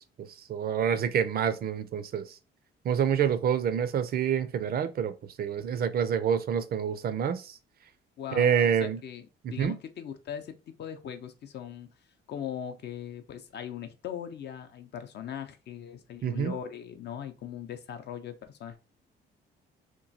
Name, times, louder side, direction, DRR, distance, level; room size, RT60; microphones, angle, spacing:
voice 1, 0.0-2.4 2.8-7.6 8.3-9.0 9.4-9.8 16.2-16.6, right 8 dB, 50° right, 0.4 m, -27 dB
voice 2, 8.2-11.9 12.3-18.8, left 9 dB, 60° left, 0.5 m, -40 dB
2.9 x 2.2 x 2.6 m
cardioid pair, 90°, 20 cm